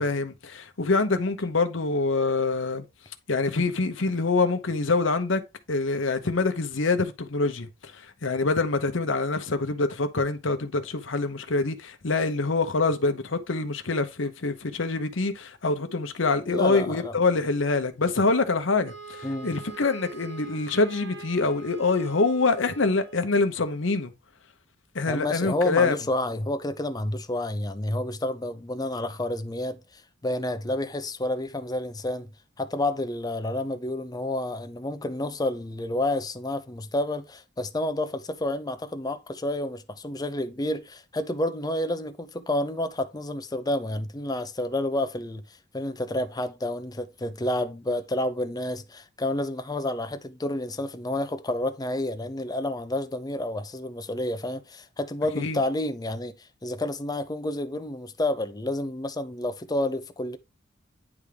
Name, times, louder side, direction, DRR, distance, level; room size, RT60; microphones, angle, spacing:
voice 1, 0.0-2.8 3.3-5.4 5.7-24.1 24.9-25.9 55.3-55.6, left 3 dB, 75° left, 0.9 m, -25 dB
voice 2, 16.5-17.1 19.2-19.5 25.1-32.3 32.6-45.4 45.7-60.4, left 1 dB, 20° left, 0.6 m, -30 dB
Wind instrument woodwind instrument, 18.8-23.3, right 6 dB, 60° right, 1.1 m, -43 dB
9.7 x 3.6 x 3.3 m
head